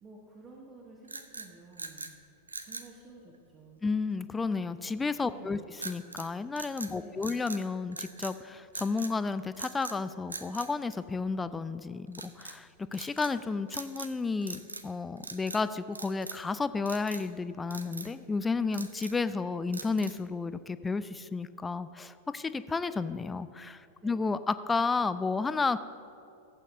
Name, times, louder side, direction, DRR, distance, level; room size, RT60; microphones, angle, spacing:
voice 1, 0.0-2.1 2.6-3.8 5.3-5.7 6.9-7.4 24.0-24.1, right 3 dB, 25° right, -2 dB, 1.2 m, -52 dB
sound 1, 1.0-2.1 2.5-2.9 5.8-6.3 6.6-7.6 7.9-8.4 8.7-9.1 9.5-10.0 10.3-11.5 12.1-12.6 12.9-13.3 13.7-14.2 14.4-14.9 15.2-15.6 15.9-16.5 16.9-17.3 17.7-18.1 18.5-19.2 19.7-20.3, right 3 dB, 80° right, 0.5 m, -42 dB
voice 2, 3.8-5.6 5.8-25.8, left 4 dB, 15° left, 13 dB, 0.4 m, -32 dB
15.0 x 8.2 x 2.7 m, 2.6 s
figure-of-eight pair, 90°, 0 cm